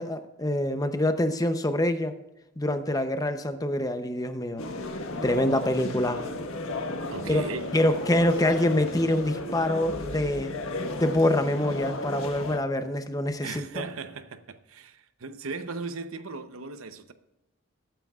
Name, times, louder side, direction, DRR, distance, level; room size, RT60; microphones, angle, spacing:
voice 1, 0.0-2.1 2.6-4.6 5.2-6.2 7.3-7.4 7.7-10.5 10.8-13.8, left 1 dB, 15° left, 0.7 m, -25 dB
sound 1, 4.6-12.6, left 2 dB, 80° left, 1.4 m, -34 dB
voice 2, 7.1-7.8 13.4-17.1, right 4 dB, 80° right, 0.8 m, -37 dB
21.0 x 9.0 x 2.4 m
head